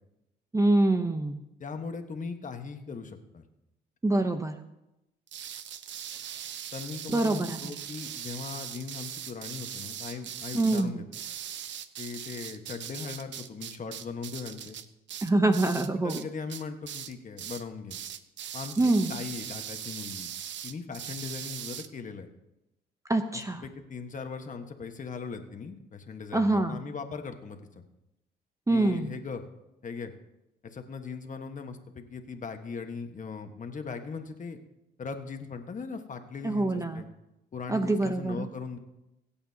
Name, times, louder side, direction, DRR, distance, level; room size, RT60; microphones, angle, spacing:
voice 1, 0.5-1.4 4.0-4.6 7.1-7.7 10.5-11.0 15.2-16.3 18.8-19.1 23.1-23.6 26.3-26.8 28.7-29.1 36.4-37.0 37.7-38.5, right 2 dB, 15° right, 7 dB, 0.8 m, -25 dB
voice 2, 1.6-3.4 6.7-11.0 12.0-14.8 16.0-18.0 18.5-20.3 20.6-22.3 23.3-27.8 28.7-29.4 29.8-30.1 30.6-34.6 35.0-37.1 37.5-38.8, left 5 dB, 40° left, 6 dB, 1.4 m, -39 dB
sound 1, 5.3-16.2 16.5-17.1 17.4-17.6 17.9-21.9, right 10 dB, 65° right, 0.7 m, -40 dB
23.5 x 8.7 x 2.8 m, 0.92 s
cardioid pair, 90°, 20 cm